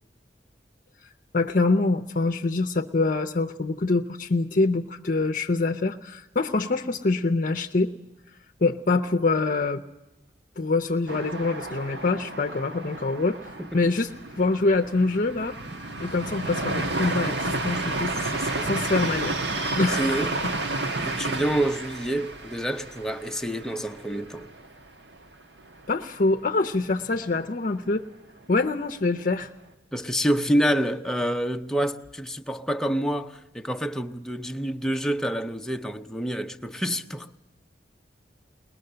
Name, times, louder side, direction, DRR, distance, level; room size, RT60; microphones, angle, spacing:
voice 1, 1.3-7.9 8.6-9.8 10.6-15.6 16.0-19.4 19.8-20.3 25.9-28.1 28.5-29.5, left 3 dB, 50° left, 0.6 m, -25 dB
sound 1, 11.1-24.8 25.1-25.2 25.6-26.2, right 2 dB, 80° right, 1.4 m, -31 dB
voice 2, 13.6-13.9 17.2-17.4 18.3-18.8 19.6-20.3 21.0-24.5 29.9-37.3, equal, 5° left, 0.7 m, -28 dB
22.0 x 20.0 x 6.7 m
head